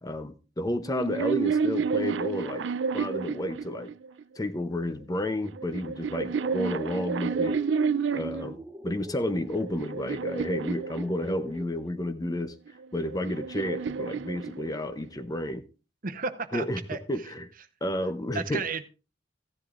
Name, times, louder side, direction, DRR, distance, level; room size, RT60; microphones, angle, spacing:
voice 1, 0.0-2.7 2.9-3.9 4.4-7.6 8.1-15.7 16.5-16.8 17.1-17.5 17.8-18.6, left 1 dB, 20° left, 0.6 m, -31 dB
sound 1, 0.8-4.2 5.1-8.5 9.2-11.6 12.7-15.1, right 5 dB, 70° right, 0.4 m, -30 dB
sound 2, 6.4-11.7, equal, 15° right, 0.8 m, -43 dB
voice 2, 16.0-17.0 18.3-18.8, right 4 dB, 45° right, 0.8 m, -33 dB
15.0 x 11.0 x 2.5 m
head